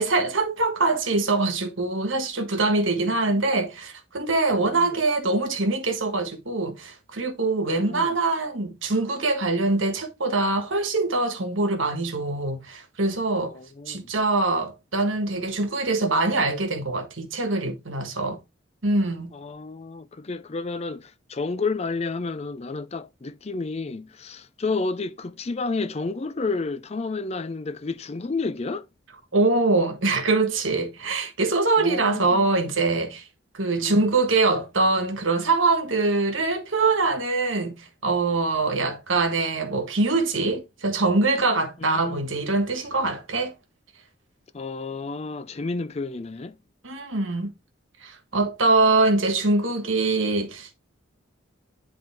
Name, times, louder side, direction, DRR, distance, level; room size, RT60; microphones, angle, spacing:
voice 1, 0.0-13.6 13.9-18.4 18.8-19.3 29.3-33.2 33.5-43.5 46.8-47.5 48.0-50.7, right 3 dB, 75° right, 1.5 m, -23 dB
voice 2, 4.6-5.0 7.6-8.2 13.5-14.0 19.3-28.9 31.8-32.5 33.8-34.1 41.8-42.2 44.5-46.6, left 3 dB, 30° left, 0.5 m, -31 dB
10.5 x 3.6 x 3.5 m
head